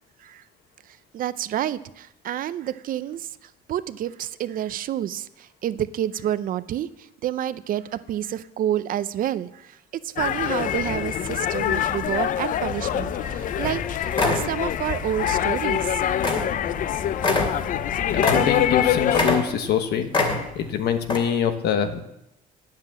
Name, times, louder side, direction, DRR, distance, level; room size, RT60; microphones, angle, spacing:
voice 1, 0.9-16.0, right 11 dB, 55° right, 15 dB, 0.6 m, -29 dB
sound 1, 10.2-19.3, left 11 dB, 50° left, 0.5 m, -25 dB
sound 2, 12.5-18.5, left 2 dB, 5° right, 2.3 m, -39 dB
sound 3, 13.2-13.3 13.6-13.8 14.1-14.5 15.2-15.4 15.8-15.9 16.2-16.5 16.8-16.9 17.2-18.8 19.1-19.8 20.1-20.7 21.0-21.2, left 3 dB, 30° left, 2.5 m, -24 dB
voice 2, 18.1-20.1 20.5-22.0, left 8 dB, 75° left, 8 dB, 1.3 m, -24 dB
9.8 x 7.5 x 7.3 m, 0.83 s
cardioid pair, 110°, 17 cm